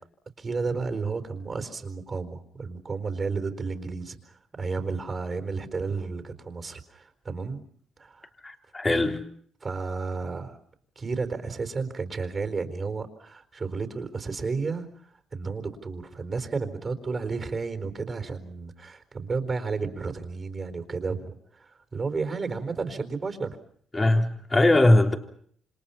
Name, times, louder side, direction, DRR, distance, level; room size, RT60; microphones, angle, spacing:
voice 1, 0.4-7.6 8.0-8.3 9.6-10.6 11.0-23.6, right 4 dB, 35° right, 9 dB, 4.2 m, -32 dB
voice 2, 8.4-9.2 23.9-25.2, left 1 dB, 20° left, 3 dB, 3.4 m, -20 dB
28.5 x 26.5 x 5.7 m, 0.62 s
cardioid pair, 90°, 0 cm